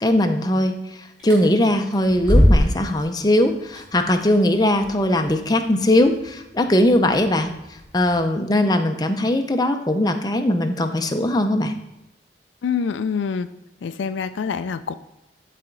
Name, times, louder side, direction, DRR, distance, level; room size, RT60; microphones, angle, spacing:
voice 1, 0.0-0.7 1.2-7.5 7.9-11.7, left 1 dB, 20° left, 6 dB, 0.5 m, -20 dB
sound 1, 1.2-8.2, equal, 5° right, 2.2 m, -25 dB
voice 2, 12.6-13.5 13.8-14.9, left 6 dB, 75° left, 11 dB, 0.4 m, -25 dB
12.5 x 4.2 x 3.8 m, 0.94 s
head